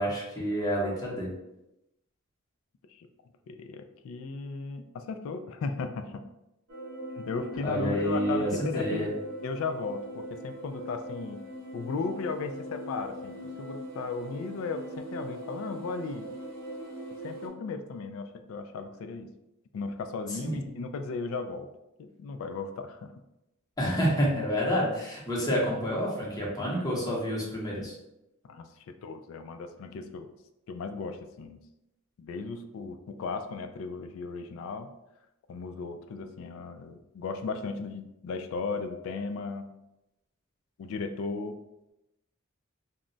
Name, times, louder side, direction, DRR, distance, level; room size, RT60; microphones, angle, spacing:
voice 1, 0.0-1.3 7.6-9.1 20.4-20.6 23.8-27.9, equal, 20° left, -5 dB, 0.8 m, -28 dB
voice 2, 3.5-6.2 7.2-9.1 9.4-11.4 11.7-16.3 17.2-19.3 19.7-21.7 22.0-23.1 28.5-30.3 30.7-31.6 32.2-34.9 35.5-39.7 40.8-41.6, left 4 dB, 70° left, 8 dB, 0.3 m, -36 dB
sound 1, 6.7-17.5, equal, 70° right, 0.6 m, -41 dB
2.2 x 2.0 x 3.7 m, 0.91 s
head